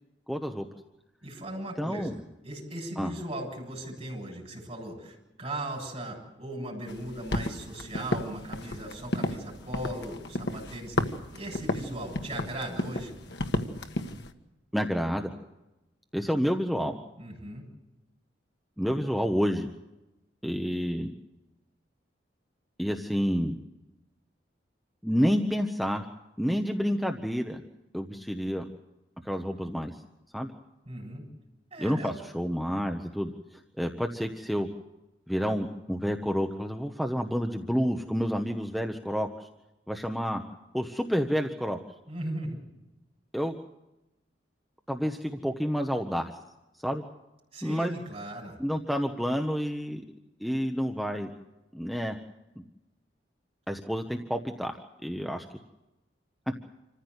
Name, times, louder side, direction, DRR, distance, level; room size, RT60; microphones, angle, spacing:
voice 1, 0.3-0.7 1.8-2.2 3.0-3.1 14.7-15.3 16.1-17.0 18.8-19.7 20.4-21.1 22.8-23.6 25.0-26.0 26.4-27.6 27.9-28.6 29.2-29.9 30.3-30.5 31.8-34.7 35.3-39.5 39.9-40.4 40.7-41.8 43.3-43.6 44.9-46.3 46.8-47.0 47.6-47.9 48.6-50.0 50.4-51.3 51.7-52.2 53.7-54.8 55.0-55.4, equal, ahead, 4 dB, 1.0 m, -29 dB
voice 2, 1.2-13.1 17.2-17.6 30.8-31.2 31.7-32.2 42.1-42.6 47.5-48.6, right 1 dB, 30° right, -2 dB, 7.7 m, -38 dB
sound 1, 6.9-14.3, left 1 dB, 65° left, 1.6 m, -33 dB
27.0 x 15.0 x 8.2 m, 0.99 s
head